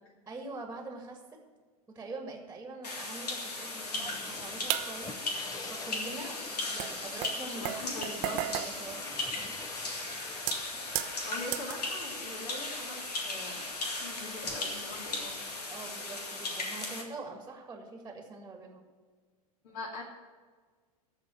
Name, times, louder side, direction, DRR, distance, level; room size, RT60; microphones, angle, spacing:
voice 1, 0.3-1.4 1.9-5.1 5.7-6.4 6.7-7.7 8.3-8.4 8.6-9.1 10.7-10.9 15.7-18.9, right 3 dB, 10° right, 3 dB, 1.7 m, -44 dB
sound 1, 2.8-17.0, left 2 dB, 85° left, 2.0 m, -37 dB
sound 2, 3.6-13.5 13.7-17.6, left 3 dB, 20° left, 0.9 m, -49 dB
voice 2, 3.7-4.1 7.5-8.4 11.2-15.4 19.6-20.0, left 2 dB, 55° left, -1 dB, 2.5 m, -43 dB
sound 3, 4.7-5.3 6.2-6.3 6.8-9.8 10.3-11.9 12.4-12.6 13.0-13.1 14.1-14.8 15.1-15.3 16.1-16.2, right 14 dB, 45° right, 0.8 m, -36 dB
14.0 x 5.0 x 8.9 m, 1.5 s
hypercardioid pair, 105°, 20 cm